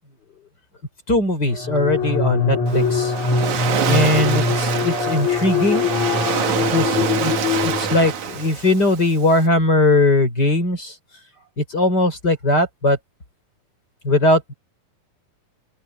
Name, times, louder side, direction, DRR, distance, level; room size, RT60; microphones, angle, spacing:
voice 1, 1.1-3.1 3.9-5.9 6.7-11.0 11.6-13.0 14.0-14.5, left 2 dB, 25° left, 5.0 m, -19 dB
sound 1, 1.5-8.4, left 4 dB, 50° left, 7.4 m, -22 dB
Waves surf, 2.7-9.5, right 9 dB, 60° right, 2.8 m, -26 dB
open air
omnidirectional pair, 4.3 m